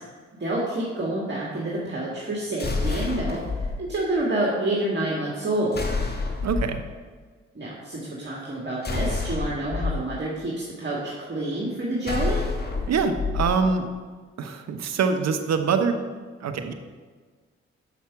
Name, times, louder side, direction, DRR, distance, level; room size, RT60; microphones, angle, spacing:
voice 1, 0.4-5.8 7.5-12.4, right 1 dB, 40° right, -5 dB, 1.9 m, -28 dB
sound 1, 2.6-3.7 5.7-6.8 8.8-9.9 12.0-13.5, left 4 dB, 35° left, 1.4 m, -28 dB
voice 2, 6.4-6.8 12.9-13.9 14.4-16.0 16.4-16.7, right 5 dB, 65° right, 8 dB, 0.8 m, -24 dB
7.0 x 5.8 x 4.7 m, 1.5 s
supercardioid pair, 40°, 29 cm